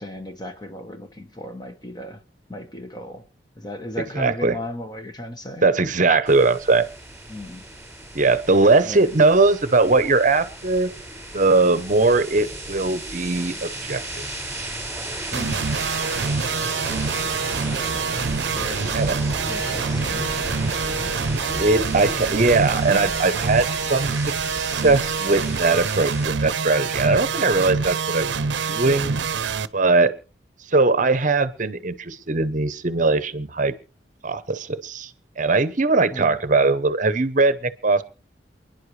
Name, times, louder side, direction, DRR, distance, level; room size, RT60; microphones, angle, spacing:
voice 1, 0.0-2.2 2.5-3.3 3.6-5.7 7.3-7.6 8.8-9.1 15.3-15.7 16.9-17.3 18.4-18.8 19.4-20.3 36.1-36.4, left 1 dB, 25° left, 1.1 m, -36 dB
voice 2, 4.1-4.6 5.6-6.9 8.1-10.9 11.3-14.0 18.9-19.2 21.6-28.4 28.7-29.2 29.7-30.1 30.7-33.7 34.2-35.1 35.4-38.0, right 3 dB, 45° right, 0.8 m, -20 dB
sound 1, 6.3-26.3, right 1 dB, 10° right, 5.4 m, -34 dB
sound 2, 15.3-29.7, right 5 dB, 90° right, 0.6 m, -26 dB
29.0 x 10.5 x 3.2 m
head